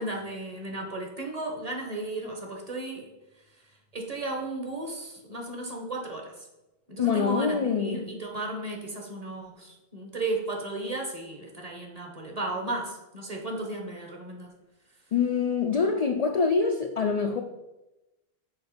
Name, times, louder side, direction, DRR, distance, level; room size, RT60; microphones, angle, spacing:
voice 1, 0.0-3.1 3.9-6.3 6.9-14.5, right 2 dB, 40° right, 1.3 m, -34 dB
voice 2, 7.0-8.1 15.1-17.4, left 5 dB, 50° left, 0.4 m, -25 dB
6.4 x 4.7 x 5.1 m
omnidirectional pair, 1.1 m